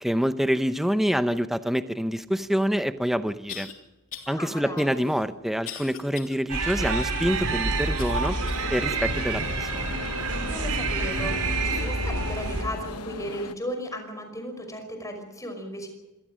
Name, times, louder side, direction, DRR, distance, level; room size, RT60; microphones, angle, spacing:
voice 1, 0.0-3.7 4.3-8.4 8.7-10.0, equal, ahead, 10 dB, 0.7 m, -26 dB
sound 1, 2.5-2.6 3.5-3.7 4.1-4.4 4.8-6.4 6.8-6.9 8.0-8.7 9.3-9.4 10.2-10.3, left 8 dB, 65° left, 3.2 m, -41 dB
voice 2, 4.3-5.0 10.5-11.3 11.6-15.9, equal, 15° left, 6 dB, 5.5 m, -35 dB
sound 2, 6.5-12.6, right 3 dB, 90° right, 4.8 m, -28 dB
sound 3, 7.2-13.5, left 4 dB, 85° left, 1.1 m, -37 dB
26.0 x 19.0 x 6.3 m, 1.0 s
head